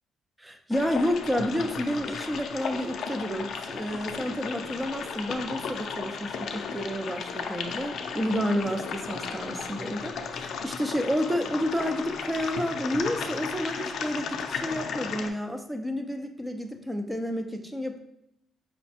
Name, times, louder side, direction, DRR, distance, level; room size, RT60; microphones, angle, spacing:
voice 1, 0.4-18.0, equal, 10° right, 5 dB, 0.6 m, -30 dB
sound 1, 0.7-15.3, left 5 dB, 65° left, 0.5 m, -35 dB
5.5 x 2.2 x 4.2 m, 0.81 s
cardioid pair, 90°, 0 cm